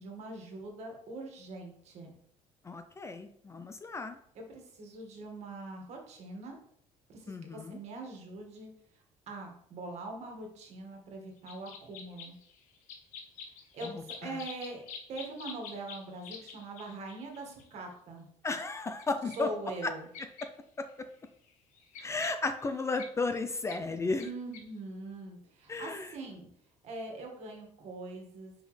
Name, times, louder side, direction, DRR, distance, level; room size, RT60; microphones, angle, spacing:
voice 1, 0.0-2.1 4.4-6.6 7.1-8.7 9.3-12.4 13.7-13.9 14.2-14.8 15.1-18.3 19.4-20.1 24.2-26.5 26.8-28.5, right 2 dB, 55° right, 1 dB, 1.8 m, -42 dB
voice 2, 2.6-4.2 7.3-7.8 13.9-14.4 18.4-19.5 19.8-19.9 22.0-24.2 25.7-26.1, left 3 dB, 20° left, 8 dB, 0.4 m, -34 dB
sound 1, 11.5-17.7 19.0-19.1 19.3-19.4 20.1-20.4 20.9-21.0 21.3-23.1 23.7-23.8 24.2-24.3 24.5-24.6, left 6 dB, 70° left, 0.9 m, -47 dB
6.0 x 5.1 x 3.2 m, 0.67 s
cardioid pair, 125°, 13 cm